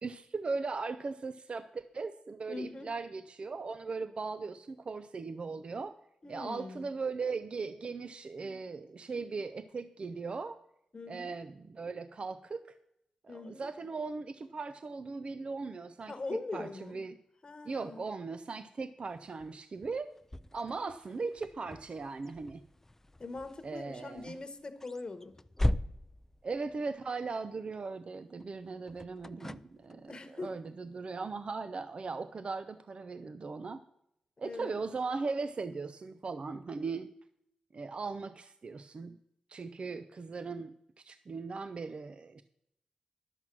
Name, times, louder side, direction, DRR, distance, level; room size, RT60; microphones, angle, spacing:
voice 1, 0.0-5.9 6.3-10.6 11.1-12.6 13.2-16.1 16.5-17.2 17.6-20.1 20.5-22.6 23.6-24.4 26.4-33.8 34.4-37.1 37.7-39.2 39.5-42.4, right 4 dB, 50° right, 12 dB, 0.5 m, -38 dB
voice 2, 2.5-2.9 6.2-6.9 10.9-11.4 13.3-13.7 16.1-17.0 17.4-18.1 23.2-25.4 30.1-30.5 34.4-34.8, left 3 dB, 40° left, 9 dB, 1.1 m, -42 dB
sound 1, 19.1-27.4 28.4-30.1, left 1 dB, 15° left, 0.4 m, -39 dB
11.0 x 7.4 x 6.0 m, 0.77 s
cardioid pair, 55°, 2 cm